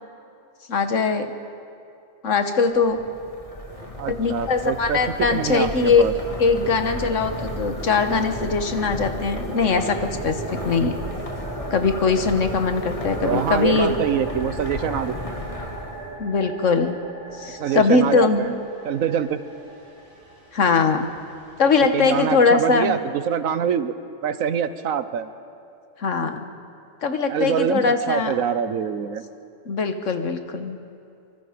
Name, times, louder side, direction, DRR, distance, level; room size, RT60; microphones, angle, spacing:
voice 1, 0.7-1.3 2.2-3.0 4.1-6.1 6.4-11.0 11.7-13.9 16.2-16.9 17.3-18.4 20.5-21.1 21.6-23.0 26.0-26.4 27.0-28.4 29.6-30.8, left 4 dB, 65° left, 7 dB, 1.6 m, -21 dB
sound 1, 2.7-16.2, left 1 dB, 25° left, 1.9 m, -34 dB
sound 2, 3.7-4.5 4.8-22.8, right 2 dB, 40° right, 3.0 m, -39 dB
voice 2, 4.0-6.1 13.2-15.1 17.6-18.6 18.8-19.4 21.8-23.9 24.2-25.3 27.3-29.2, right 8 dB, 85° right, 12 dB, 1.3 m, -25 dB
24.5 x 24.0 x 5.1 m, 2.5 s
omnidirectional pair, 1.4 m